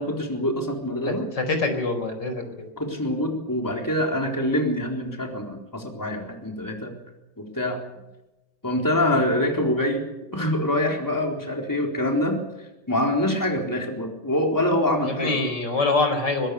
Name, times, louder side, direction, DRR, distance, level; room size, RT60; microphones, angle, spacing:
voice 1, 0.0-1.3 2.8-6.9 7.4-7.8 8.6-10.0 10.3-15.4, left 1 dB, 10° left, 2 dB, 4.0 m, -25 dB
voice 2, 1.1-2.6 15.0-16.5, left 3 dB, 75° left, 6 dB, 5.2 m, -25 dB
24.0 x 20.5 x 6.6 m, 0.99 s
omnidirectional pair, 1.9 m